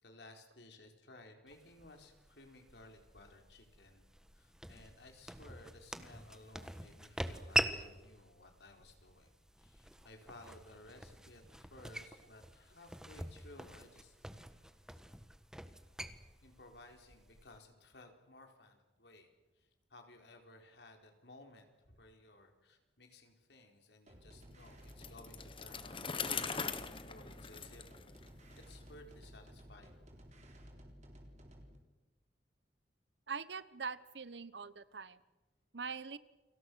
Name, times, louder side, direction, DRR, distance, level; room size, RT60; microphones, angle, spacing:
voice 1, 0.0-4.0 4.3-9.3 9.6-14.5 16.4-19.3 19.6-27.8 28.2-28.3 28.7-29.9, left 2 dB, 75° left, 4 dB, 4.4 m, -58 dB
sound 1, 1.5-17.6, right 1 dB, 5° right, 1.4 m, -43 dB
sound 2, 24.1-31.8, equal, 40° right, 4.2 m, -55 dB
Bicycle, 24.9-28.7, left 5 dB, 30° left, 1.4 m, -41 dB
voice 2, 33.3-35.2 35.7-36.2, right 5 dB, 85° right, 16 dB, 1.1 m, -43 dB
30.0 x 24.5 x 6.4 m, 1.1 s
head